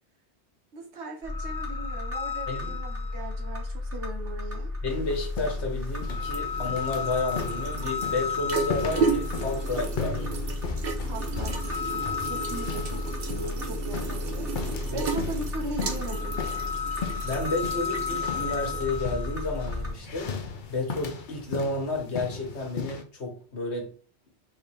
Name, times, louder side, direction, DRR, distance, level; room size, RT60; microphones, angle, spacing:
voice 1, 0.7-4.7 11.1-14.5 14.9-16.4, right 2 dB, 80° right, 1.4 m, -39 dB
sound 1, 1.2-19.9, left 4 dB, 15° right, 1.2 m, -33 dB
voice 2, 2.5-2.8 4.8-10.3 14.8-15.1 17.2-20.3 20.7-23.9, left 2 dB, 75° left, 1.5 m, -31 dB
sound 2, 4.9-23.0, left 5 dB, 50° left, 0.7 m, -38 dB
sound 3, 5.6-20.6, right 4 dB, 60° right, 0.9 m, -35 dB
4.1 x 3.5 x 3.4 m
omnidirectional pair, 1.1 m